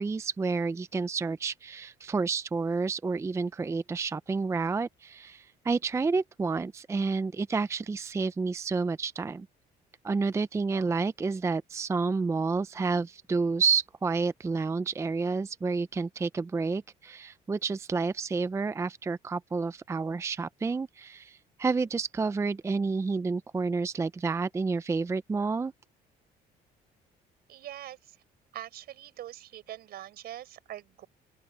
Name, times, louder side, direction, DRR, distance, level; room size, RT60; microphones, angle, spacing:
voice 1, 0.0-9.5 10.0-25.7, right 4 dB, 15° right, 0.5 m, -30 dB
voice 2, 27.5-28.2 28.5-31.1, right 12 dB, 70° right, 4.6 m, -43 dB
open air
cardioid pair, 110°, 17 cm